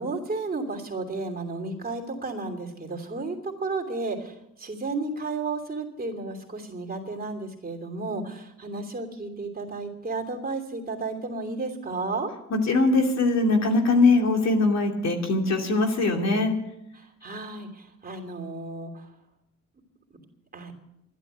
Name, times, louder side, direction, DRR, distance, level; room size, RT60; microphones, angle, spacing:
voice 1, 0.0-12.3 16.9-19.0 20.5-20.7, right 3 dB, 30° right, 1 dB, 3.0 m, -33 dB
voice 2, 12.5-16.5, left 3 dB, 60° left, 3 dB, 2.8 m, -21 dB
12.0 x 11.5 x 8.2 m, 0.83 s
cardioid pair, 90°, 30 cm